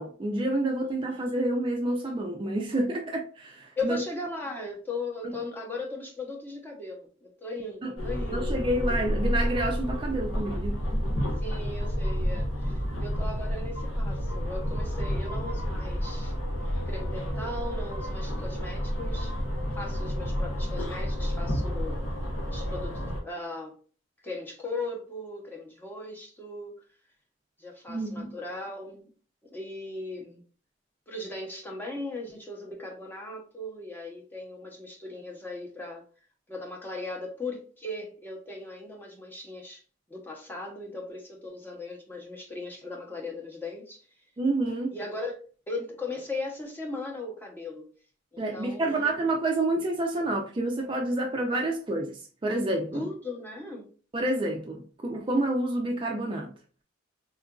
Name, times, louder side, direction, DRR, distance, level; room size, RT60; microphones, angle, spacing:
voice 1, 0.0-4.0 7.8-7.9 8.3-10.8 27.9-28.3 44.4-44.9 48.4-53.0 54.1-56.5, right 1 dB, 25° right, 0.3 m, -28 dB
voice 2, 3.8-8.5 11.4-16.3 16.9-19.3 19.7-22.0 22.5-23.7 24.2-26.8 27.6-29.1 29.5-30.4 31.1-36.0 36.5-39.8 40.1-44.1 44.9-45.4 45.7-47.9 48.3-49.1 52.9-53.9, left 2 dB, 10° left, 0.7 m, -38 dB
sound 1, 8.0-23.2, equal, 85° left, 0.8 m, -30 dB
3.7 x 2.4 x 2.3 m
head